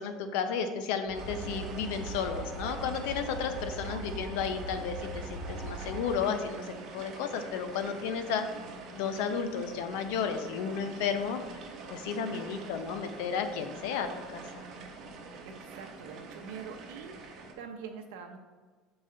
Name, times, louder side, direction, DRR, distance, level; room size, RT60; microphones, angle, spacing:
voice 1, 0.0-8.5 8.9-11.4 11.9-14.6, left 6 dB, 75° left, 8 dB, 0.6 m, -33 dB
sound 1, 1.1-6.1, right 2 dB, 50° left, 1.3 m, -40 dB
sound 2, 1.1-17.5, right 4 dB, 45° right, 0.8 m, -45 dB
voice 2, 12.3-12.9 15.4-18.4, right 6 dB, 90° right, 5 dB, 0.7 m, -45 dB
6.5 x 3.9 x 3.8 m, 1.5 s
cardioid pair, 165°, 0 cm